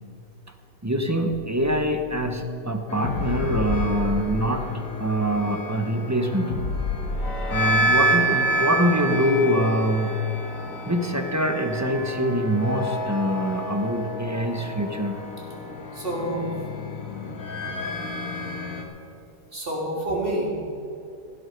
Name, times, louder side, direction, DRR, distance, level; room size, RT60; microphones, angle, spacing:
voice 1, 0.8-4.7 5.0-6.5 7.5-10.1 10.8-15.2, equal, 10° right, 6 dB, 0.9 m, -24 dB
sound 1, 1.3-2.1 3.0-4.7 5.0-5.1 6.5-7.6, left 4 dB, 90° left, 1.7 m, -30 dB
sound 2, 2.9-18.8, right 1 dB, 50° left, 2.0 m, -29 dB
voice 2, 15.9-16.5 19.5-20.5, right 1 dB, 30° right, -3 dB, 3.7 m, -27 dB
16.5 x 12.0 x 5.3 m, 2.7 s
omnidirectional pair, 1.8 m